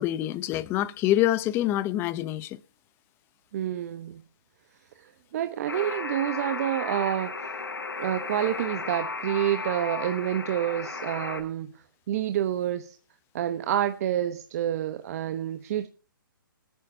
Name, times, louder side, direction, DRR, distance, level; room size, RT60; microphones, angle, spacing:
voice 1, 0.0-2.6, left 14 dB, 20° left, 0.7 m, -26 dB
voice 2, 3.5-4.2 5.0-7.5 8.0-11.7 12.1-13.0 13.3-15.9, right 11 dB, 45° right, 1.0 m, -28 dB
Alarm, 5.7-11.4, left 4 dB, 85° left, 3.6 m, -34 dB
26.5 x 9.4 x 2.8 m
hypercardioid pair, 140°, 11 cm